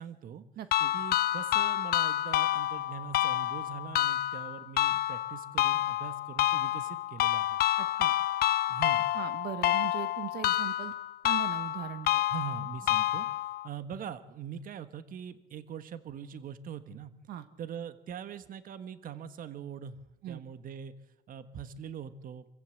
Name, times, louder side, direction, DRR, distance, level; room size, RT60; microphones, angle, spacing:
voice 1, 0.0-0.4 0.9-7.6 8.7-9.1 12.3-13.3 13.6-17.1 17.6-20.0 20.3-20.9 21.3-22.5, right 8 dB, 55° right, 12 dB, 1.4 m, -42 dB
voice 2, 0.6-0.9 7.8-8.1 9.1-10.9 11.2-12.2 17.3-17.4 20.2-20.4, right 11 dB, 75° right, 11 dB, 1.4 m, -39 dB
sound 1, 0.7-13.7, left 13 dB, 65° left, 0.7 m, -29 dB
25.5 x 15.0 x 7.8 m, 0.97 s
cardioid pair, 110°, 17 cm